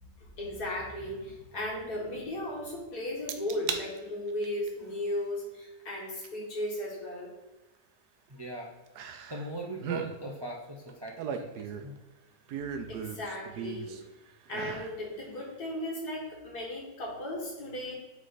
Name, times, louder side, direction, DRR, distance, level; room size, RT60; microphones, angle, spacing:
voice 1, 0.0-7.3 12.9-14.0 14.5-17.9, left 1 dB, 75° left, -3 dB, 2.3 m, -36 dB
sound 1, 3.3-3.8 4.3-4.7 6.2-6.3 9.0-9.5 9.8-10.1 10.9-12.0 12.5-14.0 14.5-15.0 15.4-15.5, right 7 dB, 80° right, 1.2 m, -37 dB
voice 2, 8.3-8.7 9.3-12.0, right 2 dB, 40° right, 0 dB, 0.3 m, -39 dB
8.3 x 3.3 x 4.0 m, 1.1 s
omnidirectional pair, 1.6 m